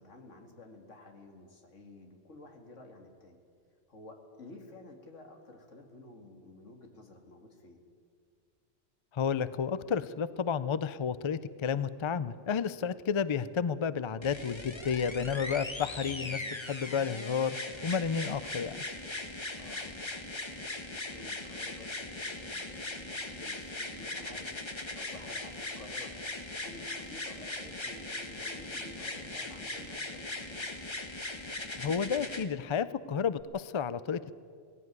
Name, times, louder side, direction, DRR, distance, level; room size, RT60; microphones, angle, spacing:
voice 1, 0.0-3.4 3.9-7.8 19.6-20.2 20.6-24.5 25.0-26.2 26.4-30.7, left 2 dB, 70° left, 3 dB, 2.5 m, -52 dB
voice 2, 9.1-17.6 17.8-18.8 31.8-34.3, left 6 dB, 50° left, 16 dB, 0.3 m, -31 dB
sound 1, 14.2-32.4 33.4-33.5, left 2 dB, 25° left, 1.3 m, -39 dB
18.0 x 16.0 x 9.6 m, 2.2 s
omnidirectional pair, 1.3 m